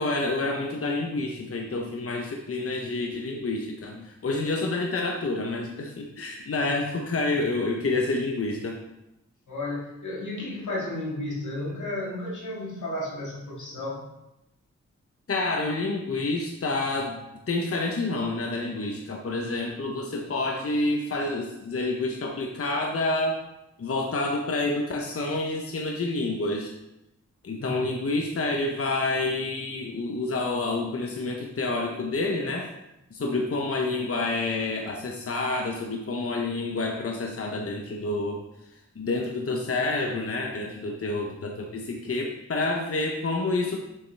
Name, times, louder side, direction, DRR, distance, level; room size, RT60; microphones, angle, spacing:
voice 1, 0.0-8.8 15.3-23.4 23.8-26.7 27.4-32.7 33.1-38.4 39.0-43.8, left 2 dB, 50° left, 1 dB, 0.9 m, -28 dB
voice 2, 9.5-14.1 27.6-28.1, left 1 dB, 90° left, -4 dB, 2.2 m, -33 dB
7.1 x 6.8 x 3.4 m, 0.89 s
cardioid pair, 65°, 29 cm